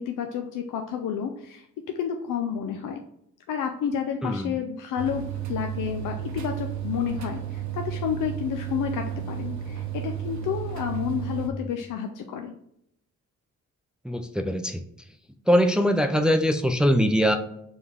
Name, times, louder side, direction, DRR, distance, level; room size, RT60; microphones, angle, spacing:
voice 1, 0.0-1.7 2.0-3.0 3.5-5.2 5.5-12.5, left 8 dB, 80° left, 5 dB, 0.5 m, -30 dB
voice 2, 4.2-4.6 14.0-14.8 15.5-17.4, equal, 5° right, 7 dB, 0.4 m, -22 dB
sound 1, 5.0-11.5, right 10 dB, 65° right, 0.8 m, -33 dB
5.3 x 2.3 x 3.5 m, 0.75 s
cardioid pair, 60°, 31 cm